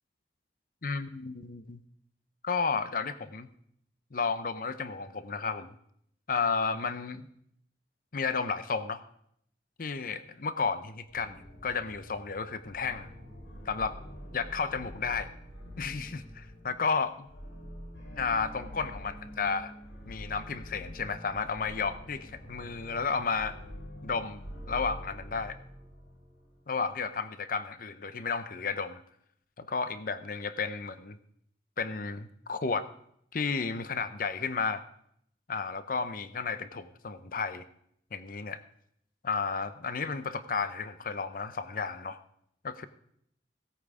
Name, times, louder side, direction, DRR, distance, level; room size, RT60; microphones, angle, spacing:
voice 1, 0.8-1.8 2.4-3.5 4.1-5.7 6.3-7.3 8.1-9.0 9.8-13.1 13.7-13.9 14.3-15.3 15.8-17.3 18.1-19.7 20.1-23.6 24.0-25.6 26.7-29.0 29.6-31.2 31.8-32.8 33.3-34.8 35.5-37.6 38.1-38.6 39.2-42.2 42.6-42.9, left 5 dB, 50° left, 12 dB, 0.7 m, -32 dB
sound 1, 11.0-26.7, equal, 85° left, 4.8 m, -46 dB
16.5 x 8.6 x 4.9 m, 0.71 s
head